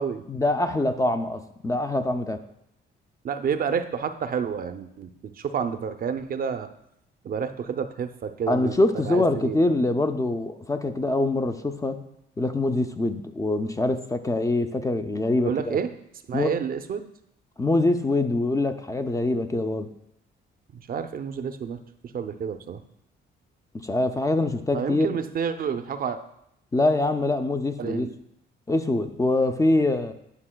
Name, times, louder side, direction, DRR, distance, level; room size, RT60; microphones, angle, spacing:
voice 1, 0.3-2.4 8.5-12.0 12.4-15.8 16.3-16.5 17.6-19.9 23.7-25.2 26.7-28.1 28.7-30.1, left 2 dB, 15° left, 7 dB, 0.4 m, -24 dB
voice 2, 3.2-6.7 7.2-9.6 15.4-15.9 16.3-17.1 20.7-21.8 22.1-22.8 24.7-26.2 27.8-28.1, right 7 dB, 45° right, 9 dB, 0.5 m, -29 dB
9.7 x 5.6 x 2.2 m, 0.76 s
cardioid pair, 90°, 20 cm